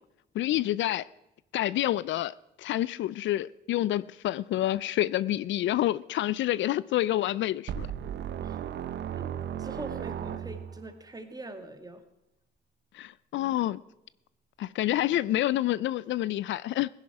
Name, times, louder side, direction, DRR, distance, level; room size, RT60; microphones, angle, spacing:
voice 1, 0.4-1.0 1.5-2.3 2.6-7.9 12.9-13.8 14.6-16.9, left 14 dB, 70° left, 0.4 m, -28 dB
sound 1, 7.7-10.9, right 9 dB, 60° right, 0.8 m, -35 dB
voice 2, 9.6-12.0, right 2 dB, 20° right, 1.8 m, -43 dB
16.5 x 10.5 x 4.7 m
cardioid pair, 90°, 20 cm